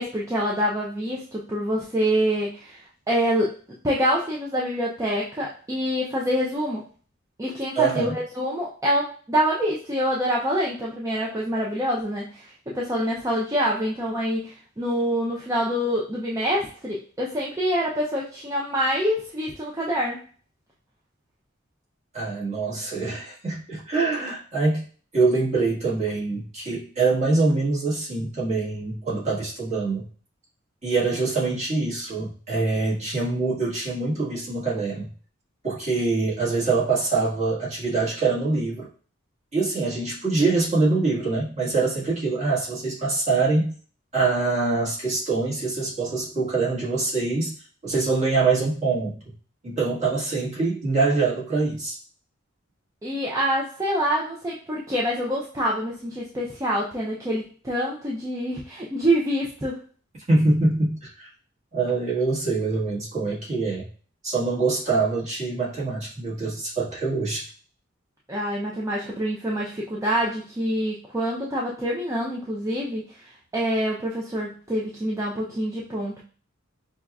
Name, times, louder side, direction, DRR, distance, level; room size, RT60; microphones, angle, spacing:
voice 1, 0.0-3.6 3.8-6.8 7.4-20.2 53.0-59.8 68.3-76.2, equal, 15° right, -4 dB, 0.5 m, -26 dB
voice 2, 7.7-8.1 22.1-24.8 25.1-30.1 30.8-35.1 35.6-38.9 39.5-43.7 44.1-47.5 47.8-49.2 49.6-52.0 60.3-61.3 61.7-63.9 64.2-67.5, right 3 dB, 35° right, -7 dB, 1.5 m, -24 dB
5.4 x 2.3 x 2.3 m, 0.41 s
head